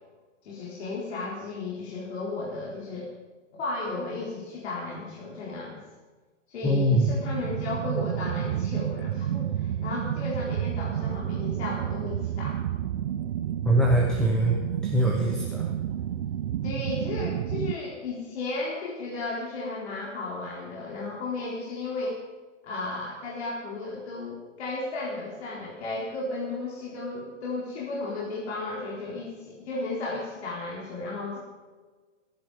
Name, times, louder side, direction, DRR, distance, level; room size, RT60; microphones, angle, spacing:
voice 1, 0.4-3.1 3.6-5.8 6.5-12.6 16.6-22.2 22.6-31.4, left 3 dB, 55° left, -5 dB, 4.1 m, -34 dB
voice 2, 6.6-7.1 13.6-14.6 14.9-15.7, right 1 dB, ahead, -2 dB, 0.8 m, -22 dB
sound 1, 6.9-17.7, right 11 dB, 45° right, 0.5 m, -30 dB
24.5 x 10.5 x 4.9 m, 1.4 s
hypercardioid pair, 160°, 38 cm